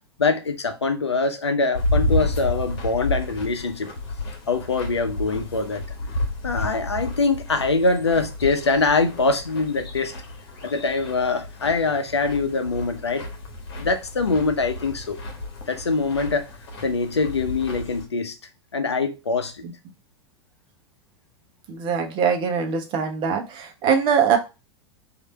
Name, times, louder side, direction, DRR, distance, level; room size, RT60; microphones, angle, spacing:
voice 1, 0.2-3.9 4.5-5.8 6.4-10.1 10.6-13.3 13.8-15.2 15.7-16.5 16.8-18.4 18.7-19.6, left 3 dB, 80° left, 0.6 m, -23 dB
sound 1, 1.7-18.0, left 1 dB, 60° left, 1.1 m, -31 dB
voice 2, 21.7-24.4, right 7 dB, 35° right, 0.8 m, -22 dB
3.2 x 2.6 x 3.9 m
figure-of-eight pair, 90°, 14 cm